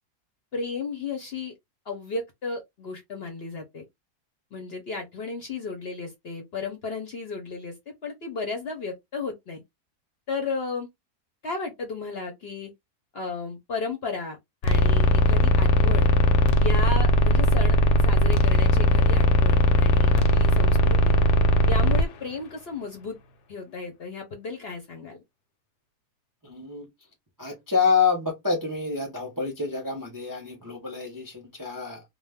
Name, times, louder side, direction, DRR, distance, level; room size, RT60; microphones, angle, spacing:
voice 1, 0.5-1.5 1.9-3.8 4.5-7.7 8.0-9.6 10.3-10.9 11.4-12.7 13.1-16.1 16.6-17.8 18.0-21.1 21.7-23.2 23.5-25.2, left 4 dB, 55° left, 0.7 m, -34 dB
sound 1, 14.6-22.0, equal, 85° left, 1.1 m, -19 dB
voice 2, 26.4-26.9 27.4-32.0, left 5 dB, 25° right, 0.4 m, -27 dB
2.3 x 2.3 x 3.3 m
omnidirectional pair, 1.6 m